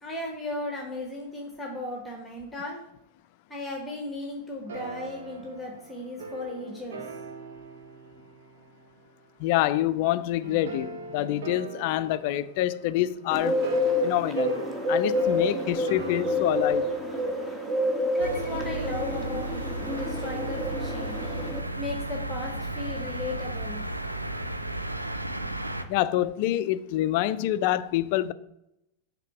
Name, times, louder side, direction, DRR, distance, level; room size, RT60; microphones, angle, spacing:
voice 1, 0.0-2.8 3.5-7.0 18.1-21.2 21.8-23.8, left 2 dB, 10° left, 1.2 m, -36 dB
sound 1, 4.7-9.3 10.4-17.6, right 3 dB, 65° right, 0.9 m, -42 dB
voice 2, 9.4-13.6 14.0-14.6 14.9-16.9 25.9-28.3, left 14 dB, 50° left, 0.3 m, -26 dB
Bird, 13.3-21.6, left 1 dB, 10° right, 1.1 m, -28 dB
sound 2, 18.2-25.8, right 1 dB, 85° right, 0.5 m, -34 dB
5.7 x 3.6 x 5.8 m
figure-of-eight pair, 90°, 0 cm